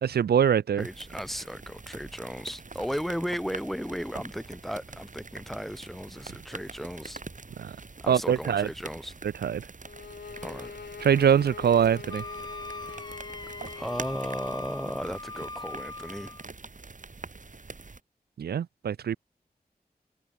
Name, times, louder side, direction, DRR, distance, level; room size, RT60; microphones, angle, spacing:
voice 1, 0.0-0.8 7.6-7.8 8.1-8.7 9.4-9.6 11.0-12.2 18.4-19.2, right 8 dB, 90° right, 0.4 m, -23 dB
voice 2, 0.8-7.2 8.0-9.1 10.4-10.7 13.7-16.4, equal, ahead, 2.6 m, -35 dB
sound 1, 0.8-18.0, right 3 dB, 55° right, 3.5 m, -45 dB
sound 2, 9.8-14.7, left 5 dB, 90° left, 1.7 m, -44 dB
Wind instrument woodwind instrument, 12.1-16.5, left 2 dB, 25° left, 1.3 m, -41 dB
wide cardioid pair, 65°, 16 cm